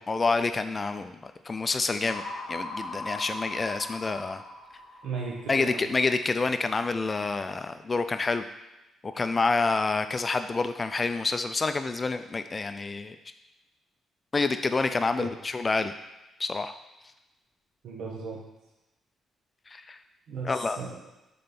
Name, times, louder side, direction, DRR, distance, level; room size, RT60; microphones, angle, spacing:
voice 1, 0.0-2.2 2.5-4.4 5.5-8.5 9.0-13.2 14.3-15.9 16.4-16.7 19.7-20.0 20.4-20.8, left 3 dB, 30° left, 9 dB, 0.3 m, -28 dB
sound 1, 2.1-5.9, left 2 dB, 55° left, 0.7 m, -39 dB
voice 2, 5.0-5.8 15.2-15.3 17.8-18.4 20.3-20.9, right 4 dB, 75° right, -2 dB, 1.0 m, -36 dB
5.2 x 3.8 x 5.9 m, 1.0 s
cardioid pair, 90°, 0 cm